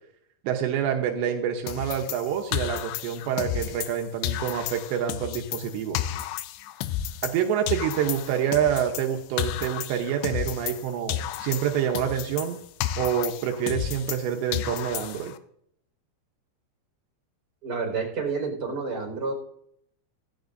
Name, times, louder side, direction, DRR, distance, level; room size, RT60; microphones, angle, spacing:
voice 1, 0.4-6.0 7.2-12.6 13.0-15.3, right 9 dB, 80° right, 3 dB, 3.2 m, -27 dB
sound 1, 1.7-4.0 4.2-7.4 7.7-10.8 11.1-14.2 14.5-15.4, left 12 dB, 80° left, 2.6 m, -32 dB
voice 2, 17.6-19.3, right 4 dB, 20° right, 0 dB, 4.9 m, -29 dB
16.5 x 16.0 x 2.6 m, 0.72 s
omnidirectional pair, 5.1 m